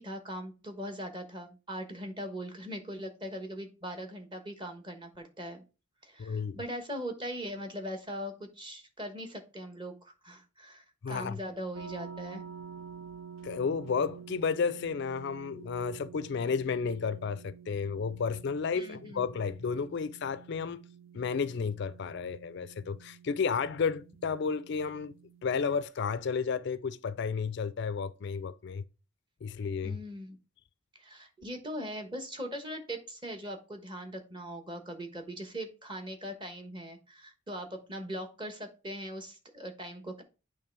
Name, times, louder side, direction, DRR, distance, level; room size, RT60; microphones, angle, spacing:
voice 1, 0.0-5.6 6.0-12.4 18.7-19.2 29.8-30.4 30.9-40.2, equal, 25° right, 1.2 m, -40 dB
voice 2, 6.2-6.6 11.0-11.4 13.4-20.8 21.1-25.1 25.4-28.8 29.4-30.0, left 5 dB, 55° left, 0.4 m, -32 dB
sound 1, 11.7-25.8, right 7 dB, 70° right, 0.4 m, -49 dB
8.5 x 3.2 x 4.5 m
head